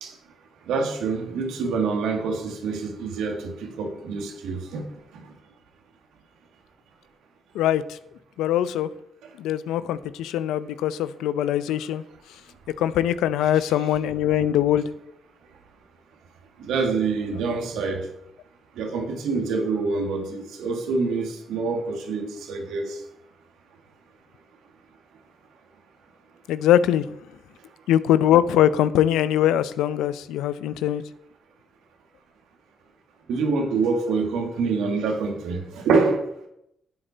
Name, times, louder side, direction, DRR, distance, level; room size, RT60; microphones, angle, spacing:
voice 1, 0.7-4.9 5.1-5.3 16.6-18.1 18.8-23.0 33.3-36.3, right 4 dB, 80° right, 3 dB, 1.7 m, -26 dB
voice 2, 7.5-8.0 8.4-8.9 9.4-12.0 12.7-14.9 26.5-27.1 27.9-31.0, left 11 dB, 85° left, 15 dB, 0.4 m, -22 dB
11.0 x 8.0 x 3.9 m, 0.77 s
hypercardioid pair, 45°, 0 cm